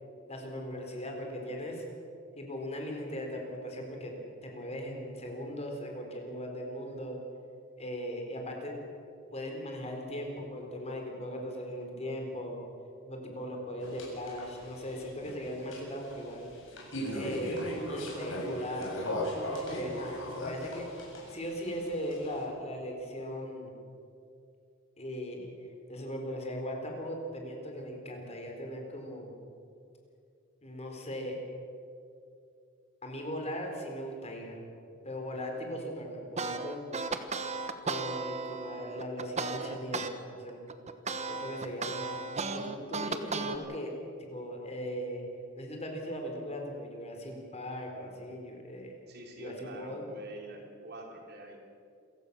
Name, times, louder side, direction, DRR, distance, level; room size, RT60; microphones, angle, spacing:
voice 1, 0.3-1.8 2.4-4.1 4.4-7.2 7.8-8.7 9.3-12.6 13.0-16.5 17.1-19.1 19.3-20.9 21.3-23.7 25.0-25.5 25.9-29.4 30.6-31.4 33.0-34.6 35.0-36.9 37.8-40.6 41.2-42.2 42.5-43.9 44.2-45.2 45.5-48.9 49.4-50.1, equal, 30° left, 2 dB, 4.2 m, -39 dB
sound 1, 13.8-22.4, equal, 70° left, 7.2 m, -38 dB
sound 2, 36.4-40.1 40.5-43.6, right 4 dB, 35° right, 1.3 m, -35 dB
voice 2, 49.1-51.6, right 2 dB, 55° right, 1 dB, 3.8 m, -46 dB
27.5 x 16.0 x 6.9 m, 2.5 s
head